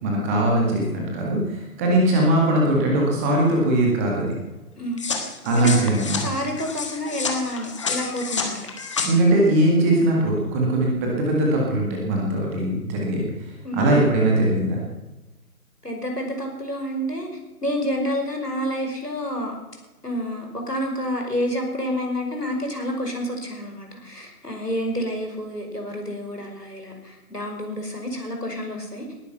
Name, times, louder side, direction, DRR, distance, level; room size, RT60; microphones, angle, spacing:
voice 1, 0.0-4.3 5.4-6.2 9.0-14.8, right 1 dB, 10° right, -2 dB, 1.8 m, -21 dB
sound 1, 5.0-9.1, left 5 dB, 20° left, 1.3 m, -29 dB
voice 2, 6.2-8.7 13.6-13.9 15.8-17.3 17.6-19.6 20.0-29.1, equal, 90° left, 2 dB, 5.5 m, -29 dB
19.5 x 11.0 x 5.8 m, 1.1 s
figure-of-eight pair, 150°, 46 cm